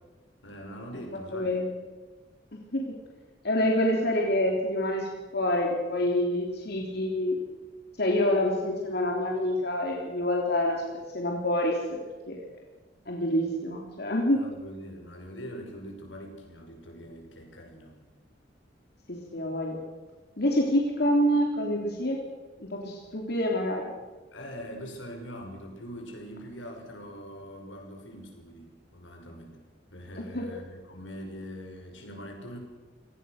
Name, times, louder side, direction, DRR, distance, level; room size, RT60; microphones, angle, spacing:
voice 1, 0.4-1.6 14.3-18.0 24.3-29.6 29.9-32.6, equal, 85° left, 3 dB, 5.9 m, -43 dB
voice 2, 1.3-1.7 2.7-2.8 3.4-7.4 8.0-10.8 11.1-12.0 12.3-12.5 13.0-14.4 19.1-19.8 20.4-22.2 22.6-23.9 30.2-30.5, left 1 dB, 60° left, -1 dB, 3.4 m, -27 dB
28.5 x 19.0 x 6.6 m, 1.3 s
head